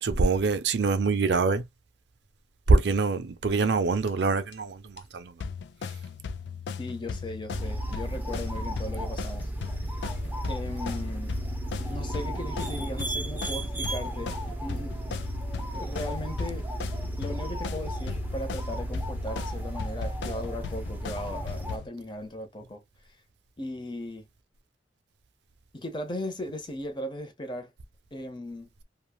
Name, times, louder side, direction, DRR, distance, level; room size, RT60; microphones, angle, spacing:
voice 1, 0.0-1.6 2.7-5.3, right 3 dB, 70° right, 0.5 m, -24 dB
sound 1, 4.1-4.2 4.5-4.6 5.0-5.1 5.4-21.9, left 5 dB, 75° left, 0.4 m, -37 dB
voice 2, 6.8-9.5 9.8-10.0 10.5-11.3 11.9-14.3 14.6-14.9 15.7-16.7 17.2-22.8 23.6-24.3 25.7-27.7 28.1-28.7, left 1 dB, 25° left, 0.8 m, -37 dB
sound 2, 7.5-21.8, right 1 dB, 10° right, 0.6 m, -34 dB
3.1 x 2.3 x 2.3 m
head